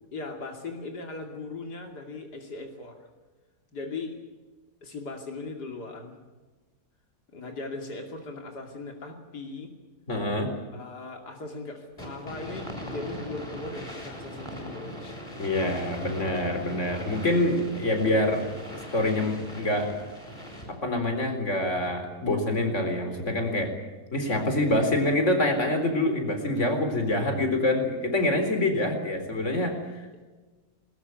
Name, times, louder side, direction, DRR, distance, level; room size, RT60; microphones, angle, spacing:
voice 1, 0.1-3.1 3.7-4.1 4.8-6.2 7.3-9.7 10.7-15.2, left 3 dB, 85° left, 3 dB, 3.3 m, -38 dB
voice 2, 10.1-10.5 15.4-18.4 18.9-19.9 20.7-23.7 24.1-30.2, left 1 dB, 45° left, 6 dB, 4.4 m, -26 dB
sound 1, 12.0-20.9, equal, 15° left, 7.5 m, -40 dB
21.0 x 20.5 x 9.6 m, 1.3 s
omnidirectional pair, 1.7 m